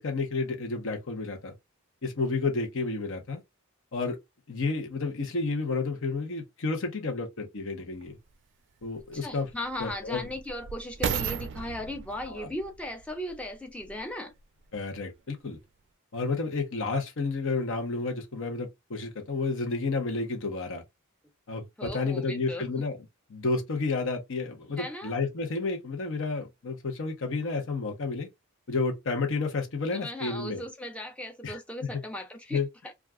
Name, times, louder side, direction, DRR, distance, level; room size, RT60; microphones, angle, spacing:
voice 1, 0.0-1.5 2.0-3.4 3.9-4.2 4.5-8.2 8.8-9.5 9.8-10.3 12.3-12.5 14.7-15.6 16.1-20.8 21.5-23.0 23.3-28.3 28.7-30.6 31.4-31.6 32.5-32.7, left 3 dB, 65° left, 0.8 m, -31 dB
sound 1, 8.0-8.1 8.8-14.1 14.8-14.9, right 7 dB, 60° right, 0.4 m, -36 dB
voice 2, 9.1-14.3 21.8-22.7 24.8-25.1 29.9-32.9, left 1 dB, 5° left, 0.6 m, -37 dB
2.4 x 2.2 x 3.4 m
head